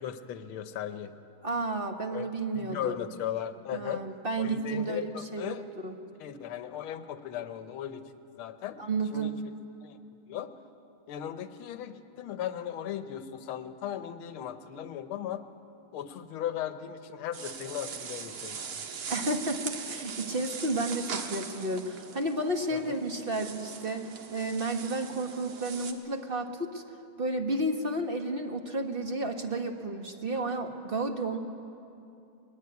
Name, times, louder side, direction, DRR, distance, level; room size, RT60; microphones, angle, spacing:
voice 1, 0.0-1.1 2.1-2.3 2.5-4.0 4.4-5.6 6.2-8.0 8.4-8.8 9.1-9.3 9.8-10.0 10.3-10.5 11.1-15.4 15.9-18.8 22.7-23.0, left 10 dB, 80° left, 10 dB, 1.8 m, -37 dB
voice 2, 1.4-3.1 3.7-5.6 5.8-6.0 8.8-9.4 19.1-26.8 27.2-31.4, right 2 dB, 30° right, 4 dB, 1.2 m, -32 dB
sound 1, 17.3-25.9, right 6 dB, 85° right, 2.4 m, -40 dB
24.0 x 20.0 x 9.5 m, 2.7 s
omnidirectional pair, 2.3 m